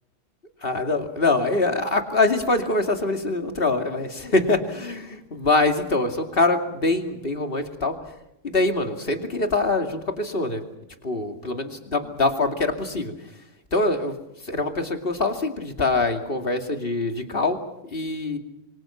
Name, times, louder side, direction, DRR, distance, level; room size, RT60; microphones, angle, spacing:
voice 1, 0.6-8.0 8.4-10.6 11.0-13.1 13.7-14.1 14.4-17.6 17.9-18.4, left 2 dB, 45° left, 6 dB, 2.7 m, -24 dB
26.5 x 24.5 x 5.8 m, 0.86 s
omnidirectional pair, 1.3 m